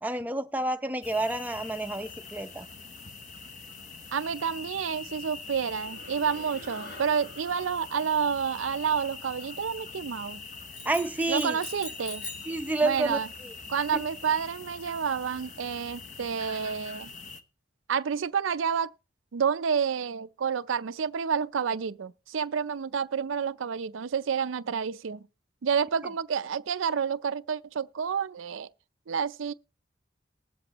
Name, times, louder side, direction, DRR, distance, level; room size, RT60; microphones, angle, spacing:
voice 1, 0.0-2.7 10.9-11.6 12.5-13.5, right 2 dB, 10° right, 0.6 m, -29 dB
sound 1, 1.0-17.4, left 4 dB, 40° left, 0.9 m, -43 dB
voice 2, 4.1-10.4 11.3-12.2 12.8-13.3 13.7-17.1 17.9-18.9 19.3-25.2 25.6-28.7 29.1-29.5, right 7 dB, 90° right, 0.5 m, -29 dB
sound 2, 5.4-10.1, left 1 dB, 55° left, 1.5 m, -50 dB
sound 3, 10.7-12.6, left 2 dB, 70° left, 2.5 m, -41 dB
20.0 x 7.8 x 3.0 m
head